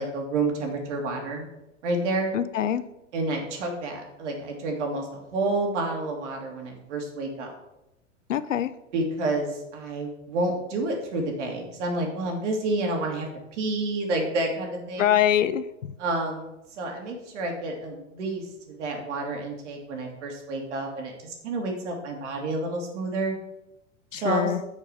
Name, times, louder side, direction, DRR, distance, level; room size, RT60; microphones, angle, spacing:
voice 1, 0.0-1.4 1.8-2.3 3.1-7.5 8.9-15.2 16.0-23.4 24.1-24.5, right 2 dB, 70° right, 1 dB, 2.4 m, -29 dB
voice 2, 2.3-2.8 8.3-8.7 15.0-15.7 24.1-24.6, left 11 dB, 80° left, 14 dB, 0.6 m, -23 dB
6.6 x 4.9 x 6.8 m, 0.91 s
hypercardioid pair, 100°, 37 cm